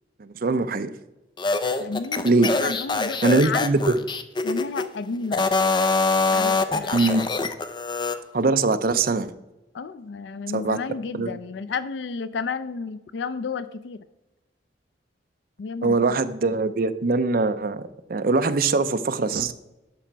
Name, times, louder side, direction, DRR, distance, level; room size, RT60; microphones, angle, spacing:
voice 1, 0.2-0.9 2.2-2.5 3.2-3.8 6.9-7.2 8.3-9.3 10.5-10.8 11.2-11.3 15.8-17.8 18.1-19.5, right 3 dB, 55° right, 10 dB, 0.6 m, -22 dB
sound 1, 1.4-4.9 5.3-8.2, left 3 dB, 25° left, 0.5 m, -24 dB
voice 2, 1.8-3.7 4.4-5.4 6.3-7.2 9.7-14.0 15.6-16.1, left 5 dB, 80° left, 13 dB, 0.4 m, -32 dB
11.5 x 5.0 x 4.6 m, 0.99 s
head